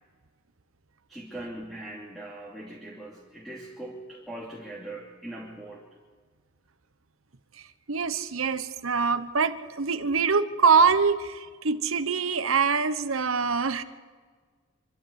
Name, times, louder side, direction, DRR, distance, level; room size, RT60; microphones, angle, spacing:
voice 1, 1.1-5.8, right 1 dB, ahead, -3 dB, 2.8 m, -41 dB
voice 2, 7.9-13.8, right 5 dB, 80° right, 12 dB, 1.1 m, -24 dB
25.5 x 14.0 x 8.1 m, 1.5 s
head